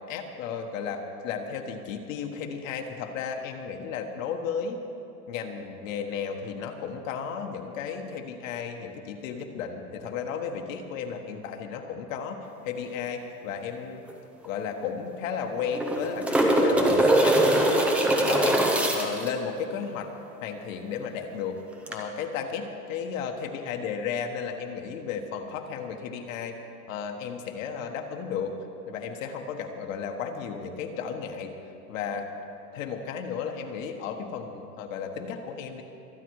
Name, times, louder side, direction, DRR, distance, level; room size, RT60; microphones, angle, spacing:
voice 1, 0.1-4.8 5.3-14.0 14.4-17.4 18.2-18.6 18.9-20.1 20.4-21.6 21.9-26.5 26.9-28.5 28.9-31.5 31.9-32.3 32.7-35.8, left 6 dB, 55° left, 4 dB, 1.5 m, -34 dB
sound 1, 14.1-14.2 14.4-14.5 15.6-19.3 21.9-22.0, right 1 dB, 5° right, 0.5 m, -22 dB
25.0 x 9.1 x 4.8 m, 2.9 s
supercardioid pair, 155°, 46 cm